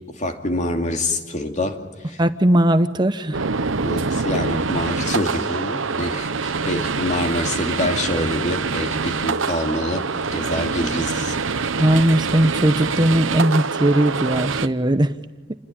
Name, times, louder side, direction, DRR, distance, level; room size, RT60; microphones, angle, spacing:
voice 1, 0.2-1.8 2.1-2.2 3.8-11.4, left 1 dB, 40° left, 5 dB, 2.6 m, -26 dB
voice 2, 2.2-3.4 11.8-15.1, right 1 dB, 25° right, 10 dB, 0.9 m, -18 dB
sound 1, 3.3-14.7, right 4 dB, 80° right, 1.0 m, -25 dB
28.0 x 21.5 x 9.8 m, 1.2 s
head